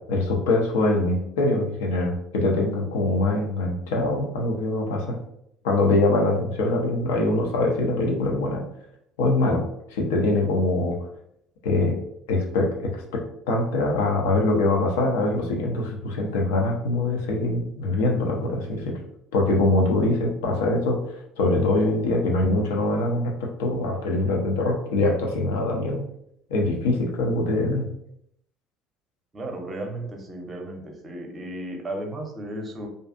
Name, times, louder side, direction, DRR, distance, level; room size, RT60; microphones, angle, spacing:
voice 1, 0.1-5.2 5.6-8.6 9.2-9.6 9.9-11.0 11.6-12.0 12.3-19.0 19.3-26.0 26.5-27.9, left 2 dB, 70° left, 1 dB, 0.5 m, -23 dB
voice 2, 29.3-32.9, right 1 dB, 30° right, 2 dB, 0.7 m, -34 dB
2.4 x 2.3 x 2.4 m, 0.74 s
figure-of-eight pair, 60°, 0 cm